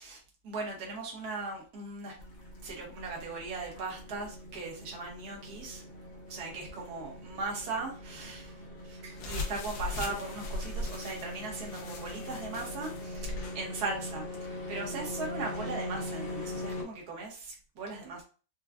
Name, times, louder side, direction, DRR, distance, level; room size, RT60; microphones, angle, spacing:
voice 1, 0.0-2.2 2.6-5.8 6.3-18.2, right 3 dB, 60° right, -1 dB, 1.5 m, -39 dB
sound 1, 2.2-16.8, left 1 dB, 50° left, 0.7 m, -42 dB
sound 2, 9.1-13.6, left 2 dB, 80° left, 1.5 m, -39 dB
4.8 x 2.3 x 2.3 m, 0.36 s
omnidirectional pair, 2.0 m